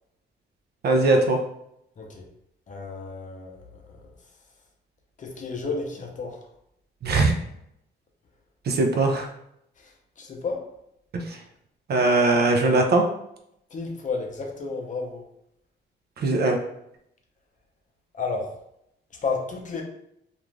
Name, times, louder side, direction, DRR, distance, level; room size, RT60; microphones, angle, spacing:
voice 1, 0.8-1.4 7.0-7.4 8.7-9.3 11.1-11.4 11.9-13.1 16.2-16.6, right 2 dB, 55° right, 3 dB, 0.5 m, -20 dB
voice 2, 2.0-2.3 2.7-4.0 5.2-6.4 9.8-10.7 13.7-15.2 18.1-18.6 19.1-19.8, left 4 dB, 40° left, 1 dB, 0.6 m, -32 dB
2.5 x 2.3 x 3.1 m, 0.77 s
cardioid pair, 90°, 20 cm